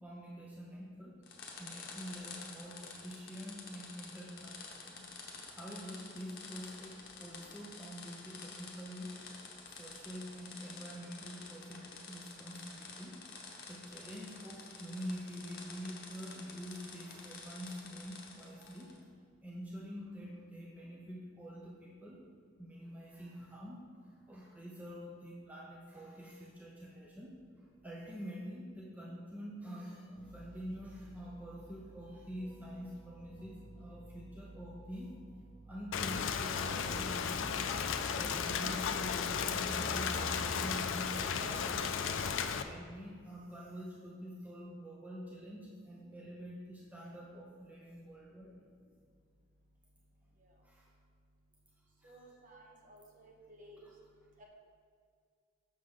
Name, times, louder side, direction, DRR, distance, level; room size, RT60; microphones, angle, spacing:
voice 1, 0.0-1.2 1.6-5.1 5.5-9.2 9.7-13.2 13.7-19.0 19.4-22.2 22.6-23.8 24.3-27.4 27.8-35.1 35.7-37.6 38.0-42.0 42.4-48.6 50.6-50.9 52.0-52.2, equal, 10° right, -4 dB, 0.6 m, -46 dB
sound 1, 1.2-19.0, left 4 dB, 50° left, 0.9 m, -50 dB
sound 2, 30.1-41.6, right 1 dB, 25° left, 1.3 m, -51 dB
Rain, 35.9-42.6, left 6 dB, 65° left, 0.4 m, -35 dB
voice 2, 52.0-53.9 54.4-54.5, right 1 dB, 40° right, -1 dB, 1.1 m, -56 dB
6.4 x 6.2 x 3.7 m, 2.2 s
head